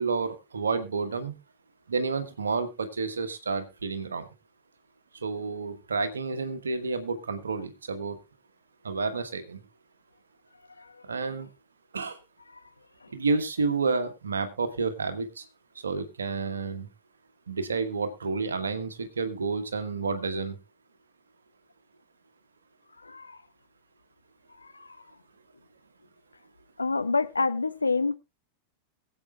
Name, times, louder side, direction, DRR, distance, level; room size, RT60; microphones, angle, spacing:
voice 1, 0.0-1.3 1.9-4.3 5.2-8.2 8.8-9.6 11.1-11.5 11.9-12.2 13.1-15.4 15.8-16.9 17.5-20.6, right 4 dB, 70° right, 1.2 m, -30 dB
voice 2, 23.0-23.4 24.6-25.0 26.8-28.1, left 4 dB, 80° left, 0.6 m, -28 dB
22.5 x 7.7 x 2.3 m
figure-of-eight pair, 90°, 0 cm